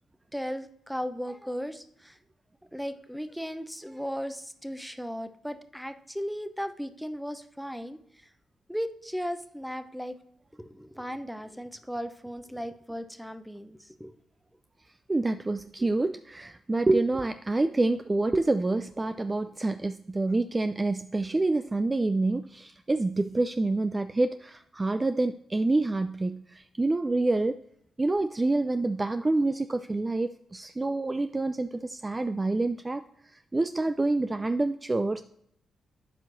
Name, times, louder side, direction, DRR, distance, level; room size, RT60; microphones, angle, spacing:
voice 1, 0.3-2.2 2.7-8.3 8.7-10.2 10.6-14.1, equal, ahead, 9 dB, 0.7 m, -36 dB
voice 2, 15.1-27.6 28.0-33.0 33.5-35.2, right 2 dB, 25° right, 9 dB, 0.3 m, -27 dB
11.5 x 4.6 x 2.6 m, 0.71 s
hypercardioid pair, 45°, 0 cm